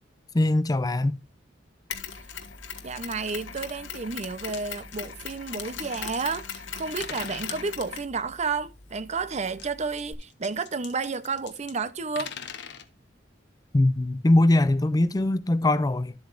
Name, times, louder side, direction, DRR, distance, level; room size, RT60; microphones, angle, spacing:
voice 1, 0.3-1.2 13.7-16.1, left 1 dB, 20° left, 0.4 m, -21 dB
Mechanisms, 1.9-10.1, left 7 dB, 90° left, 1.5 m, -39 dB
voice 2, 2.8-12.3, right 4 dB, 40° right, 0.6 m, -31 dB
sound 1, 4.3-4.6 4.9-6.7 7.0-7.6 9.5-11.7 12.0-12.9 14.6-14.7 15.2-15.3, left 8 dB, 65° left, 1.0 m, -42 dB
12.0 x 8.0 x 2.5 m
head